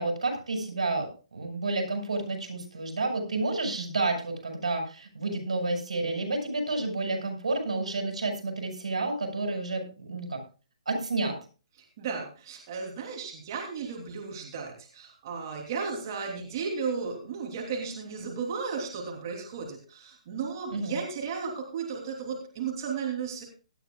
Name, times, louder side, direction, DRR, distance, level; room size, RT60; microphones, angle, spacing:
voice 1, 0.0-10.4 10.9-11.4 20.7-21.0, right 2 dB, 90° right, 3 dB, 5.7 m, -30 dB
voice 2, 12.0-23.4, right 5 dB, 40° right, 1 dB, 3.1 m, -34 dB
18.5 x 12.0 x 2.4 m, 0.34 s
hypercardioid pair, 155°, 4 cm